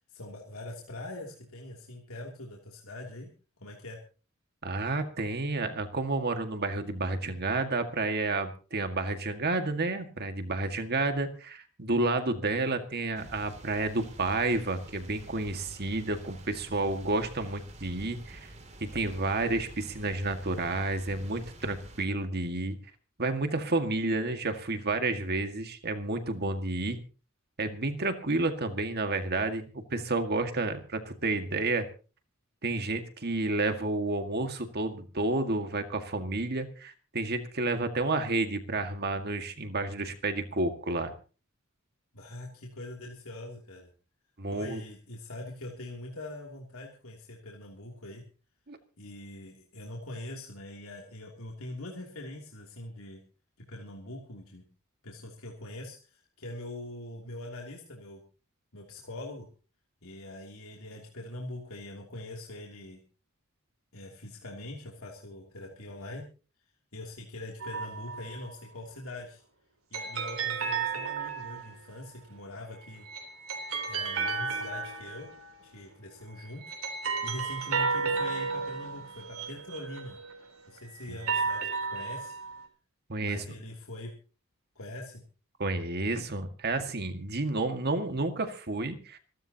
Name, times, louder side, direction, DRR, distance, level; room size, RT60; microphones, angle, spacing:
voice 1, 0.1-3.3 3.6-4.0 42.1-43.9 44.5-48.2 49.0-53.2 53.6-54.7 55.0-58.2 58.7-59.5 60.0-63.0 63.9-66.3 66.9-69.4 69.9-73.1 73.9-75.3 75.6-80.2 80.7-81.6 81.9-82.4 83.2-84.1 84.7-85.2, left 1 dB, 80° left, -1 dB, 3.0 m, -43 dB
voice 2, 4.6-18.5 18.8-22.8 23.2-27.0 27.6-31.9 32.6-41.1 44.4-44.8 48.7-48.8 81.1-81.2 83.1-83.4 85.6-89.2, right 2 dB, 50° right, 7 dB, 1.9 m, -30 dB
sound 1, 13.1-22.0, right 1 dB, 35° right, 2.7 m, -48 dB
sound 2, 67.6-68.3 69.9-71.9 72.8-75.6 76.4-80.4 81.0-82.6, right 5 dB, 80° right, 3.7 m, -33 dB
27.0 x 12.5 x 2.9 m, 0.36 s
head